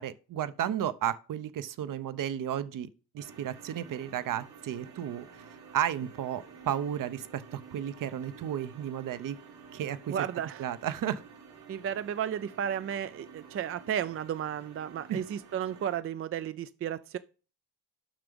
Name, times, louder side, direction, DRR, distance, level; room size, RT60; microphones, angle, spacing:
voice 1, 0.0-2.9 3.1-5.3 5.7-9.4 9.7-10.2 10.6-11.2 15.1-15.2, right 10 dB, 60° right, 0.7 m, -33 dB
sound 1, 3.2-16.0, right 5 dB, 85° right, 3.0 m, -51 dB
voice 2, 10.1-10.6 11.7-17.2, right 9 dB, 35° right, 0.4 m, -33 dB
7.4 x 5.9 x 5.2 m
cardioid pair, 115°, 38 cm